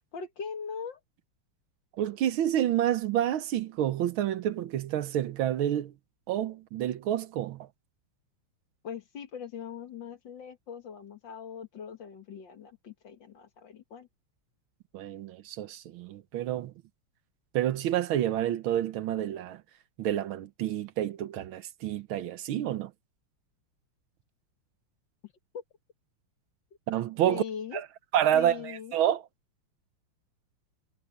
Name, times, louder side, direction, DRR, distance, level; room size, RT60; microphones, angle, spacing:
voice 1, 0.1-1.0 8.8-14.1 25.2-25.6 27.3-27.8 28.3-29.0, left 7 dB, 60° left, 2.3 m, -41 dB
voice 2, 2.0-5.9 6.3-7.7 14.9-16.7 17.5-19.6 20.0-22.9 26.9-27.4 27.7-27.8 28.1-29.2, right 11 dB, 75° right, 1.6 m, -29 dB
omnidirectional pair, 2.4 m